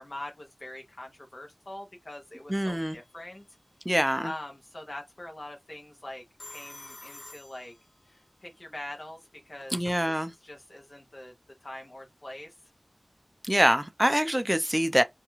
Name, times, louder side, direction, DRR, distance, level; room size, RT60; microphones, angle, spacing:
voice 1, 0.0-3.4 4.2-7.7 8.0-9.8 10.1-11.3 11.6-12.6, left 1 dB, 50° left, 0.7 m, -43 dB
voice 2, 2.5-3.0 3.9-4.3 9.7-10.3 13.4-15.0, equal, 10° right, 0.5 m, -25 dB
Telephone, 2.8-3.3 6.4-8.2 9.2-10.0, left 2 dB, 70° left, 1.3 m, -48 dB
2.4 x 2.2 x 3.0 m
wide cardioid pair, 45°, 0 cm